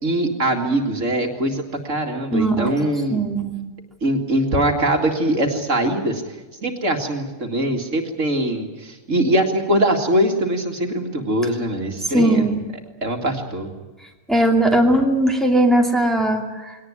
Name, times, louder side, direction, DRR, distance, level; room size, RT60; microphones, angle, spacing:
voice 1, 0.0-3.2 4.0-6.2 6.6-12.6 13.0-13.7, right 1 dB, 60° right, 4 dB, 2.6 m, -22 dB
voice 2, 2.3-2.7 3.1-3.6 12.1-12.6 14.3-16.8, right 1 dB, ahead, 1 dB, 2.5 m, -18 dB
21.5 x 18.5 x 9.6 m, 1.2 s
omnidirectional pair, 1.4 m